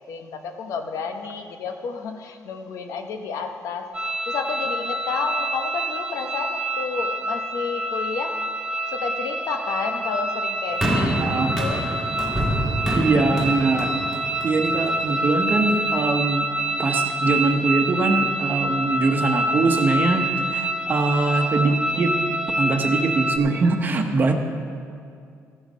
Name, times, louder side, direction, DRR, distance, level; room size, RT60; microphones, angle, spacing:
voice 1, 0.0-8.4 8.9-11.8, left 5 dB, 75° left, 5 dB, 1.0 m, -31 dB
sound 1, 3.9-23.4, right 1 dB, 15° right, 1.1 m, -26 dB
sound 2, 10.8-15.2 15.9-16.0, equal, 5° left, 1.9 m, -26 dB
voice 2, 11.2-11.5 12.9-13.9 14.4-16.5 16.8-22.1 22.6-24.3, right 3 dB, 35° right, 4 dB, 1.0 m, -22 dB
14.5 x 7.9 x 5.5 m, 2.4 s
cardioid pair, 140°, 6 cm